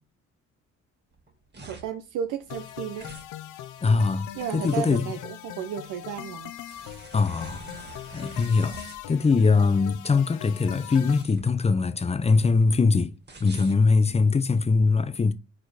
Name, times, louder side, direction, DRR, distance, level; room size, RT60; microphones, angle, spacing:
sound 1, 1.1-14.6, right 4 dB, 35° right, 2.1 m, -47 dB
voice 1, 1.7-3.1 4.3-6.5, right 9 dB, 85° right, 0.8 m, -33 dB
sound 2, 2.5-11.2, left 12 dB, 90° left, 0.6 m, -40 dB
voice 2, 3.8-5.1 7.1-7.6 8.1-8.8 9.1-13.1 13.4-15.3, left 4 dB, 20° left, 0.6 m, -22 dB
4.9 x 4.4 x 5.9 m
cardioid pair, 90°, 30 cm